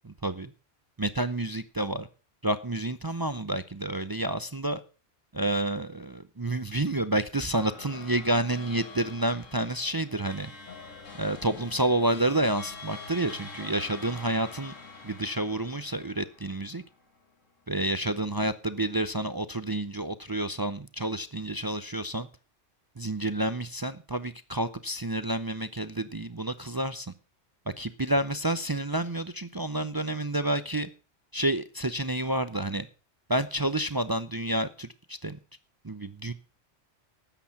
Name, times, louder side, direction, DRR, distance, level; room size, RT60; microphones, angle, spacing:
voice 1, 1.0-2.1 2.4-4.8 5.3-10.5 11.2-14.7 15.0-16.8 17.7-22.3 23.0-27.1 27.8-30.9 31.3-32.9 33.3-35.4 35.8-36.3, right 1 dB, 30° right, 13 dB, 0.4 m, -29 dB
sound 1, 7.5-17.2, left 4 dB, 85° left, 2.0 m, -45 dB
13.0 x 9.0 x 5.8 m, 0.36 s
omnidirectional pair, 1.3 m